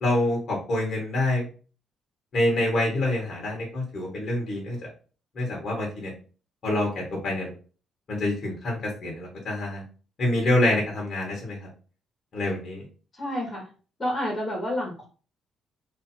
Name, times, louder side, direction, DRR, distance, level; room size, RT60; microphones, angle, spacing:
voice 1, 0.0-1.5 2.3-4.8 5.3-6.1 6.6-7.5 8.1-9.8 10.2-11.7 12.3-12.8, left 1 dB, 55° left, -2 dB, 1.5 m, -26 dB
voice 2, 13.1-13.7 14.0-15.1, left 1 dB, 30° left, -1 dB, 1.7 m, -29 dB
3.1 x 2.8 x 4.3 m, 0.37 s
cardioid pair, 90°, 0 cm